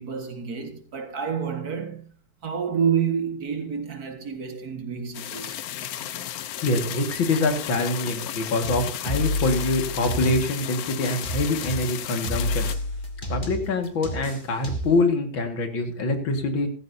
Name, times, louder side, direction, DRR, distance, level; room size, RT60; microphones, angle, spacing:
voice 1, 0.0-2.2 2.4-5.6, right 7 dB, 55° right, 2.1 m, -28 dB
sound 1, 5.1-12.7, left 11 dB, 65° left, 1.0 m, -34 dB
voice 2, 6.5-12.7 13.3-16.7, left 2 dB, 85° left, 2.7 m, -25 dB
sound 2, 8.6-10.7 11.0-15.0, left 1 dB, 25° left, 2.0 m, -30 dB
15.5 x 15.0 x 2.7 m
omnidirectional pair, 2.1 m